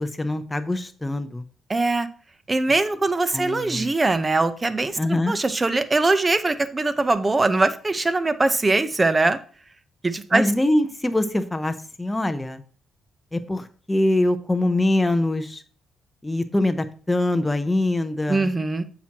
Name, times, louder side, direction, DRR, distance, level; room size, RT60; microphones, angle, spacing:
voice 1, 0.0-1.4 3.3-3.9 5.0-5.4 10.3-12.6 13.3-15.6 16.2-18.5, left 1 dB, 10° left, 8 dB, 0.6 m, -23 dB
voice 2, 1.7-2.1 2.5-9.4 10.0-10.4 18.3-18.8, right 3 dB, 25° right, 12 dB, 0.7 m, -22 dB
8.4 x 5.9 x 2.9 m, 0.41 s
cardioid pair, 90°, 0 cm